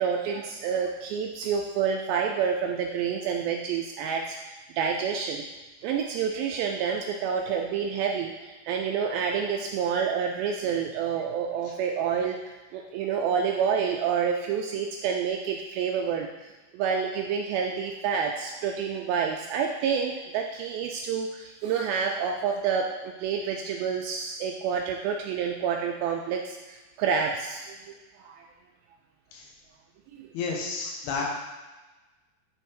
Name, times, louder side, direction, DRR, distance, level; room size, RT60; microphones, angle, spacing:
voice 1, 0.0-4.4 4.8-5.4 5.8-12.4 12.7-16.3 16.7-27.6 28.2-28.4, right 6 dB, 80° right, 1 dB, 2.2 m, -28 dB
voice 2, 30.3-31.2, left 4 dB, 80° left, 0 dB, 3.1 m, -31 dB
9.2 x 3.6 x 4.5 m, 1.2 s
omnidirectional pair, 4.7 m